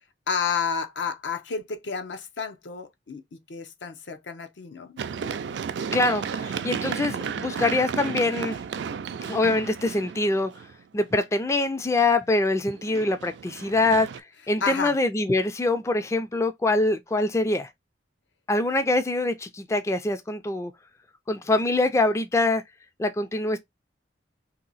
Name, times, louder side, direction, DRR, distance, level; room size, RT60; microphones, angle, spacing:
voice 1, 0.3-3.2 3.5-5.0 14.6-15.0, left 6 dB, 80° left, 0.7 m, -30 dB
Run, 5.0-10.8 12.7-14.2, right 6 dB, 70° right, 0.3 m, -33 dB
voice 2, 5.9-8.6 9.3-10.5 10.9-14.1 14.5-17.7 18.5-20.7 21.3-22.6 23.0-23.6, left 2 dB, 15° left, 0.3 m, -24 dB
2.8 x 2.6 x 4.0 m
head